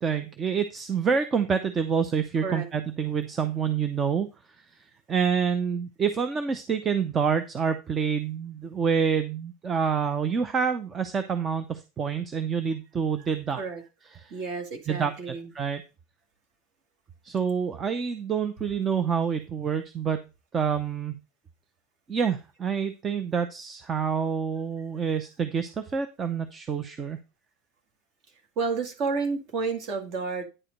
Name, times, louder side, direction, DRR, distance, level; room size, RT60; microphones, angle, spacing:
voice 1, 0.0-4.3 5.1-13.6 14.2-14.3 14.9-15.8 17.2-20.2 20.5-21.1 22.1-27.2, right 6 dB, 20° right, 10 dB, 0.6 m, -27 dB
voice 2, 14.3-15.5 28.6-30.4, right 4 dB, 35° right, 6 dB, 2.1 m, -30 dB
9.8 x 4.9 x 5.2 m, 0.28 s
supercardioid pair, 175°, 0 cm